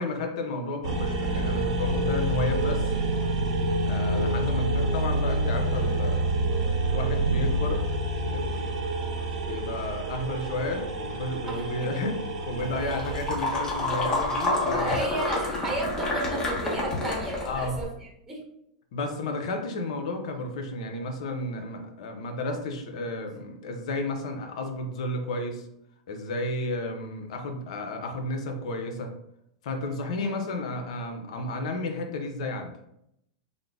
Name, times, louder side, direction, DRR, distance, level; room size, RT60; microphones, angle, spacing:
voice 1, 0.0-2.9 3.8-6.3 6.6-7.9 8.3-8.8 9.4-15.6 17.4-17.8 18.9-25.7 26.1-29.1 29.6-32.8, left 2 dB, 70° left, 4 dB, 0.6 m, -32 dB
sound 1, 0.8-13.3, right 1 dB, 70° right, 0.7 m, -27 dB
sound 2, 12.6-17.8, left 2 dB, 20° left, 1.0 m, -29 dB
voice 2, 14.7-18.4 30.2-30.4, right 2 dB, 10° right, -4 dB, 1.0 m, -33 dB
3.5 x 2.0 x 3.6 m, 0.78 s
hypercardioid pair, 120°, 3 cm